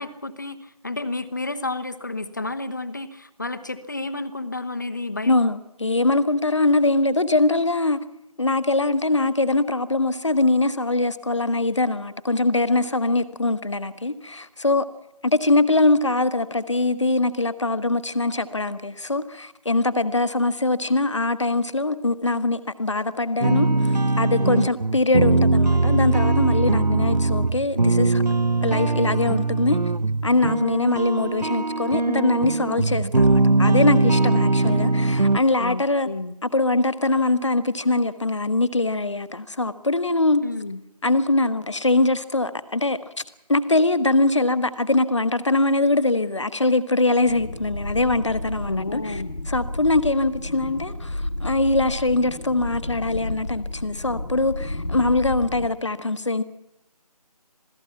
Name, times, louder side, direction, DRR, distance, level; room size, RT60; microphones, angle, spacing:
voice 1, 0.0-5.5 35.6-36.3 40.4-40.8 48.7-49.3, left 2 dB, 30° left, 1.2 m, -31 dB
voice 2, 5.3-8.0 8.4-14.9 15.2-28.2 28.6-29.8 30.2-36.1 36.5-40.4 41.0-43.0 43.5-49.2 49.5-56.4, left 2 dB, 45° left, 1.4 m, -22 dB
sound 1, 23.4-35.4, right 2 dB, 85° right, 1.1 m, -21 dB
sound 2, 47.2-55.7, left 1 dB, 80° left, 1.8 m, -32 dB
27.0 x 18.5 x 5.8 m
figure-of-eight pair, 170°, 21 cm